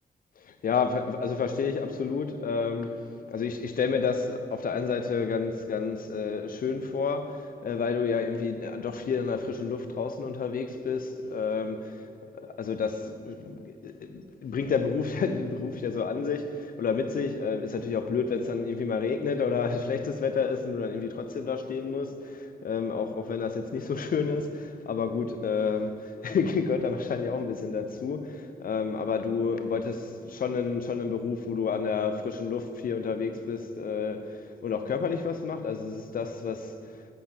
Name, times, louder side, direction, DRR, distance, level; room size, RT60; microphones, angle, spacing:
voice 1, 0.4-3.0 3.3-12.0 12.4-36.7, left 5 dB, 60° left, 0.7 m, -30 dB
9.2 x 7.2 x 4.5 m
cardioid pair, 70°, 16 cm